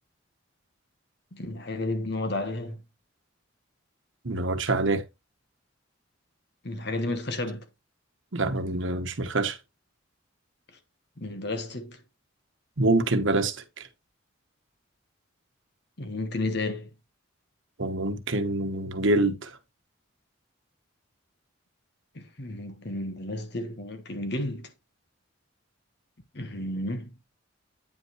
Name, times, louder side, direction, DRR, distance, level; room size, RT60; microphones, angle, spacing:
voice 1, 1.3-2.8 6.6-7.7 11.2-12.0 16.0-16.9 22.1-24.7 26.3-27.1, left 2 dB, 55° left, 1.3 m, -32 dB
voice 2, 4.2-5.0 8.3-9.6 12.8-13.9 17.8-19.6, right 2 dB, 70° right, 1.1 m, -26 dB
9.0 x 5.5 x 3.1 m
head